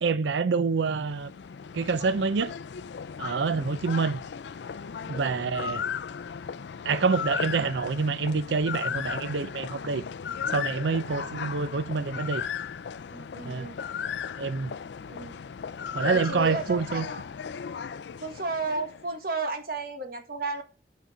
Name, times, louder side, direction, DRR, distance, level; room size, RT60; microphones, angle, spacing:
voice 1, 0.0-1.3 1.7-2.5 3.2-4.2 5.1-5.8 6.8-10.0 10.5-12.4 13.4-13.7 14.4-14.7 15.9-17.0, right 4 dB, 85° right, 0.5 m, -27 dB
sound 1, 0.7-19.1, left 7 dB, 75° left, 0.4 m, -36 dB
voice 2, 11.0-11.5 13.1-13.7 15.1-15.4 16.0-17.2 18.2-20.6, right 3 dB, 55° right, 1.6 m, -33 dB
6.4 x 5.1 x 6.8 m
head